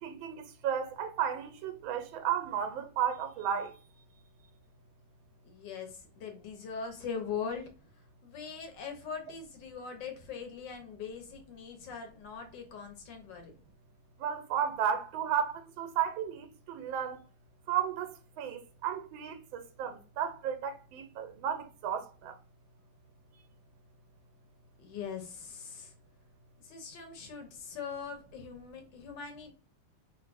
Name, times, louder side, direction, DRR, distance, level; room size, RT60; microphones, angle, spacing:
voice 1, 0.0-3.7 14.2-17.2 17.7-22.3, right 8 dB, 85° right, 1.4 m, -33 dB
voice 2, 5.4-7.7 8.2-13.5 24.8-25.9 26.6-29.5, left 6 dB, 70° left, 1.3 m, -41 dB
3.5 x 2.5 x 2.4 m
omnidirectional pair, 2.2 m